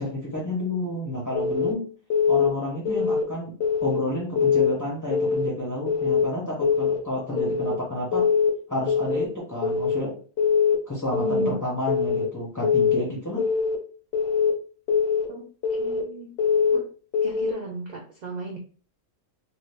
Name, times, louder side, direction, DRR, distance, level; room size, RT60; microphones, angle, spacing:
voice 1, 0.0-1.8 2.3-3.5 3.8-8.2 8.7-10.1 10.9-13.4, left 1 dB, 25° left, -4 dB, 0.4 m, -30 dB
Keyboard (musical) / Alarm, 1.4-1.7 2.1-2.5 2.9-3.2 3.6-4.0 4.4-4.7 5.1-5.5 5.9-6.2 6.6-7.0 7.4-7.7 8.1-8.5 8.9-9.3 9.6-10.0 10.4-10.8 11.1-11.5 11.9-12.3 12.6-13.0 13.4-13.8 14.1-14.5 14.9-15.3 15.6-16.0 16.4-16.8 17.1-17.5, left 6 dB, 65° left, 0.7 m, -22 dB
voice 2, 11.2-11.6 15.3-16.3 16.7-16.9 17.2-18.6, right 3 dB, 75° right, 1 dB, 0.4 m, -36 dB
2.6 x 2.4 x 3.3 m, 0.41 s
omnidirectional pair, 1.3 m